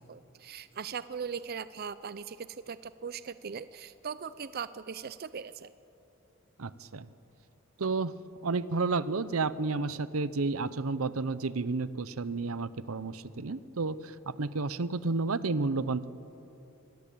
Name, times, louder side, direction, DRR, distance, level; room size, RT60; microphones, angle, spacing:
voice 1, 0.0-5.7, right 6 dB, 45° right, 14 dB, 0.5 m, -39 dB
voice 2, 6.6-7.1 7.8-8.1 8.4-16.1, right 3 dB, 80° right, 16 dB, 0.8 m, -31 dB
25.5 x 19.0 x 8.5 m, 2.9 s
head